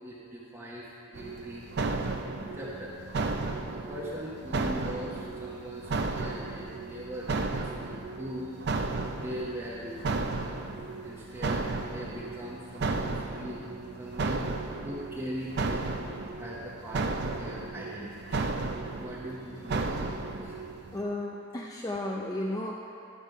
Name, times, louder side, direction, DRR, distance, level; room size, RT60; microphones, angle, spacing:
voice 1, 0.0-1.7 2.1-8.5 9.0-13.7 14.0-15.9 16.4-18.5 18.9-20.6, equal, 10° right, -6 dB, 0.8 m, -41 dB
sound 1, 1.1-21.0, right 3 dB, 55° right, 0.5 m, -34 dB
voice 2, 20.9-22.9, left 1 dB, 20° left, -2 dB, 0.4 m, -34 dB
10.5 x 4.9 x 5.4 m, 2.6 s
head